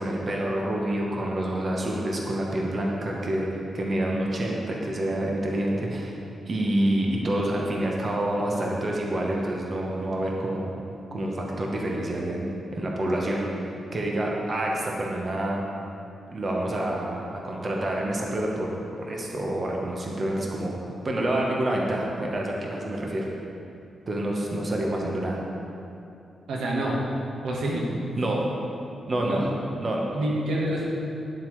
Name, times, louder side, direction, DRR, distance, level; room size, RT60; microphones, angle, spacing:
voice 1, 0.0-3.5 3.7-6.1 6.5-10.7 11.1-13.5 13.9-15.6 16.3-18.7 19.0-20.7 21.0-23.3 24.1-25.4 28.2-28.4 29.1-29.5 29.8-30.0, right 1 dB, 40° right, -2 dB, 1.1 m, -27 dB
voice 2, 26.5-27.0 27.4-27.8 29.2-29.4 30.1-30.8, right 1 dB, 90° right, -3 dB, 1.4 m, -27 dB
9.8 x 7.4 x 3.2 m, 2.7 s
cardioid pair, 105°, 0 cm